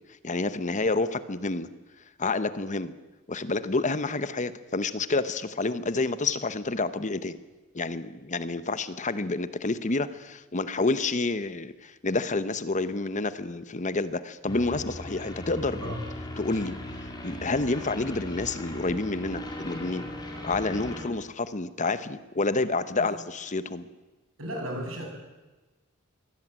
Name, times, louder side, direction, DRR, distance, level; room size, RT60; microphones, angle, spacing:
voice 1, 0.2-1.7 2.2-2.9 3.3-7.4 7.7-15.9 16.4-16.7 17.2-20.1 20.4-23.9, left 3 dB, 35° left, 13 dB, 1.0 m, -29 dB
sound 1, 14.5-21.0, left 1 dB, 20° left, 4.2 m, -38 dB
voice 2, 24.4-25.1, equal, 75° right, 2 dB, 7.1 m, -34 dB
23.5 x 17.0 x 9.0 m, 1.2 s
head